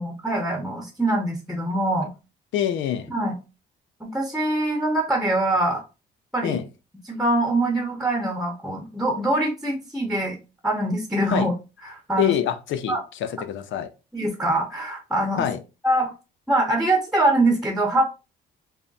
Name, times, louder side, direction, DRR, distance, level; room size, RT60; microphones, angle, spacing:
voice 1, 0.0-2.1 3.1-3.3 4.0-5.8 6.3-6.6 7.1-10.4 10.6-11.5 11.8-12.3 12.9-13.0 14.1-15.5 15.8-16.1 16.5-18.0, right 1 dB, ahead, 1.0 m, -23 dB
voice 2, 2.5-3.1 6.4-6.7 11.3-11.5 12.2-13.9 15.4-15.6, left 10 dB, 75° left, 0.6 m, -25 dB
3.5 x 2.2 x 4.0 m
cardioid pair, 90°, 20 cm